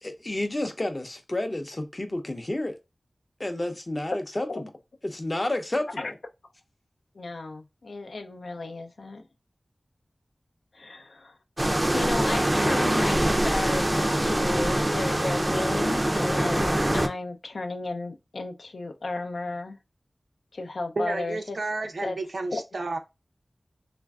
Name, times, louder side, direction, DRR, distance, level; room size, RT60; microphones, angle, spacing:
voice 1, 0.0-2.8 3.4-4.7 5.0-6.2, left 1 dB, 35° left, 0.5 m, -30 dB
voice 2, 7.2-9.2 10.7-11.4 11.9-19.8 20.5-21.6 22.0-22.2 22.5-22.6, left 2 dB, 85° left, 0.4 m, -34 dB
sound 1, 11.6-17.1, right 1 dB, 25° right, 0.4 m, -24 dB
voice 3, 21.0-23.0, right 2 dB, 80° right, 0.6 m, -31 dB
3.1 x 2.5 x 2.3 m
wide cardioid pair, 70°, 0 cm